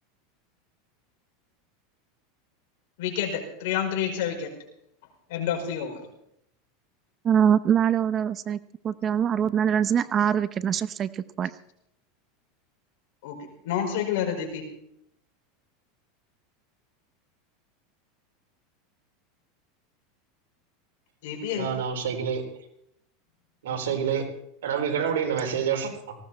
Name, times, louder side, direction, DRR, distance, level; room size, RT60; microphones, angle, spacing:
voice 1, 3.0-4.5 5.3-6.0 13.2-13.4 13.6-14.6 21.2-21.7 23.7-23.8, left 9 dB, 70° left, 2 dB, 5.3 m, -29 dB
voice 2, 7.2-8.6 8.8-11.5, right 8 dB, 30° right, 15 dB, 0.8 m, -23 dB
voice 3, 21.5-22.4 23.6-24.3 24.6-26.2, right 7 dB, 90° right, 4 dB, 4.1 m, -27 dB
19.0 x 17.0 x 4.3 m, 0.76 s
supercardioid pair, 130°, 0 cm